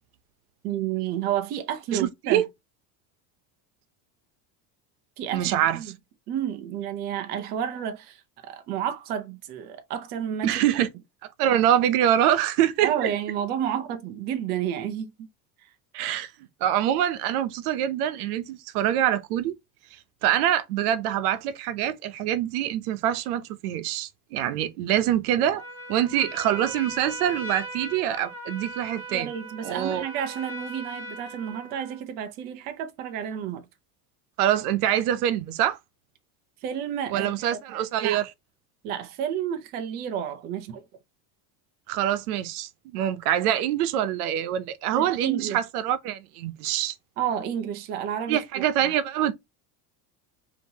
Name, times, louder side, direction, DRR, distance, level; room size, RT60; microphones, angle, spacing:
voice 1, 0.6-2.4 5.2-5.9 6.3-8.2 8.5-10.6 12.8-15.1 29.1-33.6 36.6-37.6 38.0-38.2 38.8-40.8 44.9-45.6 47.2-48.4, right 9 dB, 25° right, 0.3 m, -30 dB
voice 2, 1.9-2.4 5.3-5.8 10.4-10.9 11.4-13.1 15.9-16.3 16.6-19.6 20.2-25.6 25.9-29.3 29.6-30.0 34.4-35.8 37.1-38.3 41.9-46.9 48.3-49.3, right 11 dB, 90° right, 0.8 m, -25 dB
Trumpet, 25.5-32.0, right 1 dB, 5° left, 1.3 m, -39 dB
5.3 x 2.8 x 2.7 m
cardioid pair, 175°, 44 cm